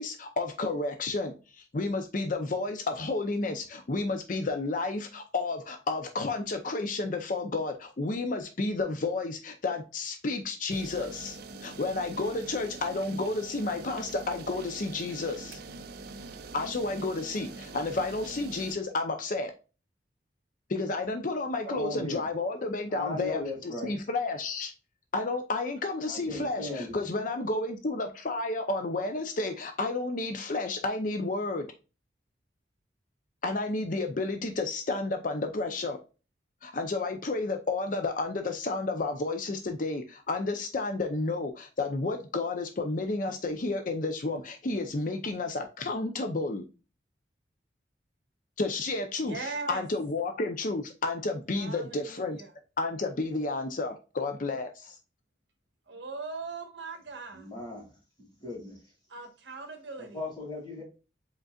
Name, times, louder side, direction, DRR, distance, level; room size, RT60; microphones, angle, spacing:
voice 1, 0.0-15.6 16.5-19.5 20.7-24.7 25.1-31.7 33.4-36.0 36.6-46.6 48.6-52.4 52.8-55.0, left 3 dB, 45° left, 0.6 m, -31 dB
sound 1, 10.7-18.8, right 3 dB, 60° right, 0.5 m, -44 dB
voice 2, 21.6-22.2 22.9-23.9 26.1-27.0 57.3-57.9 58.4-58.8 60.1-60.8, left 2 dB, 25° left, 2.4 m, -37 dB
voice 3, 49.2-49.8 51.5-52.5 55.9-57.5 59.1-60.3 60.8-60.9, right 4 dB, 75° right, 1.3 m, -40 dB
5.1 x 3.9 x 2.3 m
head